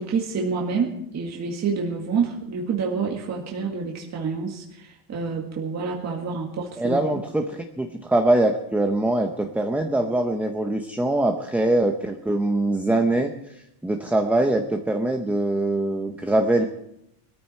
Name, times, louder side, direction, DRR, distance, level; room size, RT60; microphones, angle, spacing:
voice 1, 0.0-7.0, right 5 dB, 35° right, -1 dB, 1.9 m, -28 dB
voice 2, 6.8-13.3 13.8-16.7, right 1 dB, 5° right, 4 dB, 0.7 m, -23 dB
20.5 x 14.0 x 4.3 m, 0.79 s
cardioid pair, 150°, 49 cm